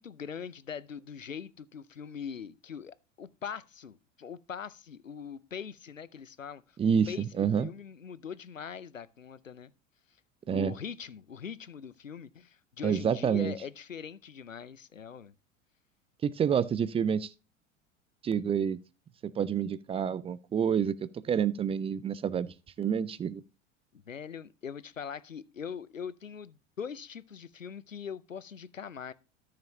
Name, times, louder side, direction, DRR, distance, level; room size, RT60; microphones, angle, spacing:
voice 1, 0.0-6.6 7.1-9.7 10.5-15.3 23.9-29.1, left 7 dB, 90° left, 0.7 m, -42 dB
voice 2, 6.8-7.7 10.5-10.7 12.8-13.5 16.2-17.3 18.2-18.8 19.2-23.4, right 7 dB, 15° right, 0.4 m, -28 dB
13.5 x 6.8 x 2.8 m
figure-of-eight pair, 80°, 38 cm